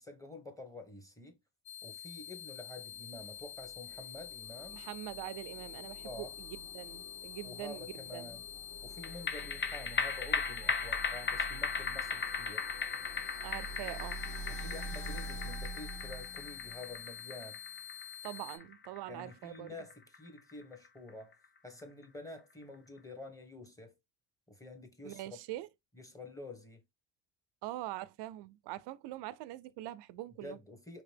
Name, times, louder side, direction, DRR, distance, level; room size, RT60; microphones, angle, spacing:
voice 1, 0.0-1.4 1.8-4.8 6.0-6.4 7.4-8.5 8.8-12.7 14.5-17.6 19.1-21.3 21.6-23.9 24.5-25.4 25.9-26.8 30.4-31.0, left 2 dB, 10° left, 1.0 m, -49 dB
sound 1, 1.7-18.6, left 10 dB, 65° left, 1.7 m, -47 dB
sound 2, 3.0-17.1, right 2 dB, 45° left, 1.2 m, -47 dB
voice 2, 4.7-8.3 13.4-14.2 18.2-19.7 25.0-25.7 27.6-30.6, right 16 dB, 85° right, 0.5 m, -43 dB
sound 3, 9.0-21.7 22.0-22.1, left 5 dB, 25° left, 0.6 m, -38 dB
5.1 x 2.9 x 3.3 m
cardioid pair, 130°, 40 cm